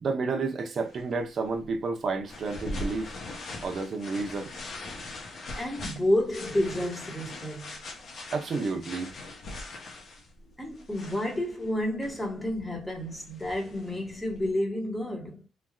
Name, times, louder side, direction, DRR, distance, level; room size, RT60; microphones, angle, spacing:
voice 1, 0.0-3.1 3.6-4.5 8.3-9.1, right 4 dB, 50° right, 0.7 m, -30 dB
sound 1, 0.8-14.5, left 2 dB, 60° left, 0.9 m, -42 dB
voice 2, 5.6-7.8 10.6-15.4, left 1 dB, 10° left, 1.1 m, -30 dB
3.3 x 2.3 x 2.3 m
cardioid pair, 90°, 0 cm